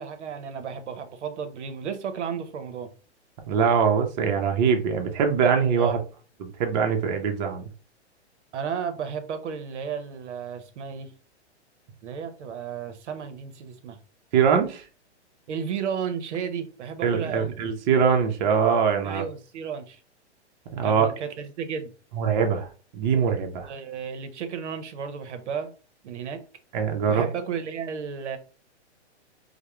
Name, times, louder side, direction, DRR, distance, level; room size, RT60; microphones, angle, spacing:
voice 1, 0.0-2.9 5.8-6.0 8.5-11.1 12.0-14.0 15.5-17.5 19.0-20.0 20.8-21.9 23.6-25.7 26.0-26.4 27.0-28.4, right 7 dB, 80° right, 0.6 m, -33 dB
voice 2, 3.5-6.0 6.4-7.7 14.3-14.8 17.0-19.2 20.7-21.1 22.1-23.7 26.7-27.3, right 6 dB, 40° right, 0.5 m, -23 dB
2.2 x 2.0 x 2.9 m
hypercardioid pair, 135°, 35 cm